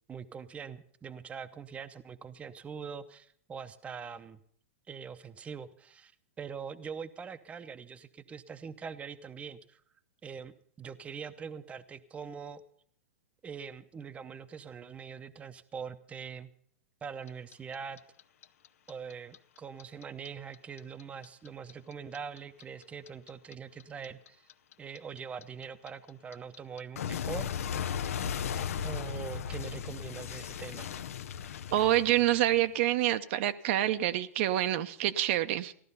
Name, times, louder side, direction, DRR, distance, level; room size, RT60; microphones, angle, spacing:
voice 1, 0.1-4.4 4.9-6.1 6.4-9.8 10.2-10.5 10.8-12.6 13.4-16.5 17.0-18.0 18.9-24.5 24.8-27.5 28.5-30.9, right 6 dB, 15° right, 0.7 m, -43 dB
Clock, 17.3-20.3 20.5-23.5 23.8-32.7, left 8 dB, 75° left, 0.6 m, -36 dB
voice 2, 31.7-35.7, right 13 dB, 55° right, 0.7 m, -27 dB
15.0 x 11.5 x 5.5 m
hypercardioid pair, 125°, 8 cm